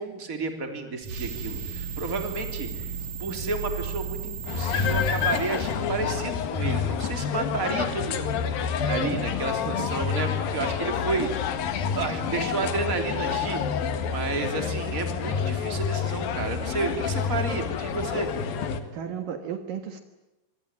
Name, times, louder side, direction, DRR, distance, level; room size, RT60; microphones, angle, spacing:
voice 1, 0.0-2.9 3.2-11.6 11.9-13.6 14.0-18.3 18.7-18.8, right 4 dB, 20° right, 5 dB, 3.4 m, -31 dB
sound 1, 1.0-6.4, right 6 dB, 50° right, 3.5 m, -34 dB
sound 2, 4.5-18.8, left 7 dB, 70° left, 3.4 m, -28 dB
voice 2, 18.9-20.0, right 8 dB, 65° right, 7 dB, 3.0 m, -34 dB
25.5 x 24.0 x 9.6 m, 0.99 s
omnidirectional pair, 4.4 m